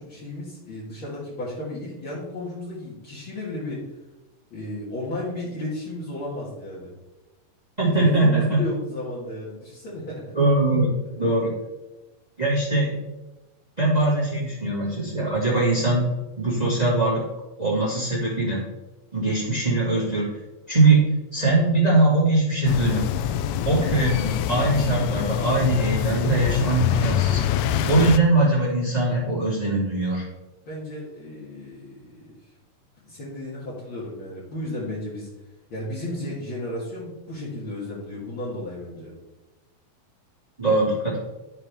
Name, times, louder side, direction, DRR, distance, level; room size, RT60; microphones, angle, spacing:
voice 1, 0.0-3.8 4.5-6.9 8.0-10.3 30.6-32.5 33.0-35.3 35.7-39.1, left 1 dB, 45° left, -7 dB, 1.7 m, -34 dB
voice 2, 7.8-8.6 10.3-11.5 12.4-12.9 13.8-16.0 16.4-17.2 17.6-18.6 19.1-20.3 20.7-21.0 21.3-23.1 23.6-27.4 27.9-30.2 40.6-41.2, right 2 dB, 20° right, -5 dB, 1.0 m, -21 dB
sound 1, 22.7-28.2, left 10 dB, 80° left, 2.3 m, -25 dB
13.0 x 4.8 x 3.4 m, 1.1 s
omnidirectional pair, 4.5 m